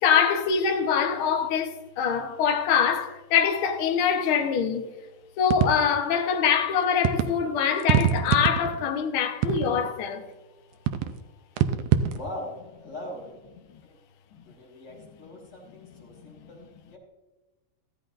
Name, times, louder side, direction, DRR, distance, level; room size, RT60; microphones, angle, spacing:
voice 1, 0.0-4.9 5.4-10.2, left 7 dB, 60° left, 1.5 m, -24 dB
sound 1, 5.5-6.1 7.1-7.3 7.8-8.9 9.4-9.9 10.9-11.2 11.6-12.2, right 9 dB, 75° right, 1.5 m, -24 dB
voice 2, 12.1-13.3 13.8-14.0 14.4-17.0, left 1 dB, 35° left, 3.8 m, -41 dB
15.0 x 14.5 x 2.6 m
omnidirectional pair, 3.4 m